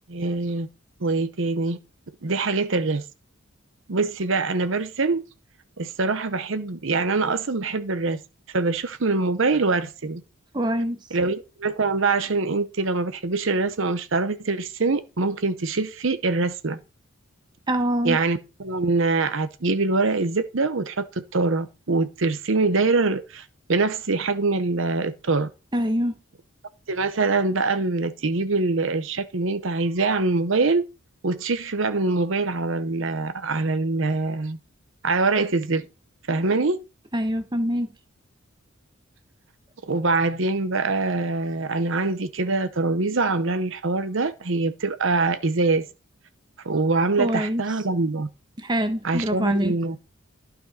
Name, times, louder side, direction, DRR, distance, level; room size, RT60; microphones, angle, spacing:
voice 1, 0.1-0.7 1.0-1.8 2.2-3.0 3.9-5.2 5.8-8.2 8.5-10.2 11.1-16.8 18.0-25.5 26.9-30.8 31.2-34.6 35.0-35.9 36.3-36.8 39.9-45.9 46.6-48.3 49.0-50.0, right 3 dB, 65° right, 0.8 m, -24 dB
voice 2, 10.5-11.0 17.7-18.2 25.7-26.1 37.1-37.9 47.2-47.6 48.6-49.8, equal, 20° right, 1.0 m, -24 dB
12.0 x 5.3 x 4.1 m
head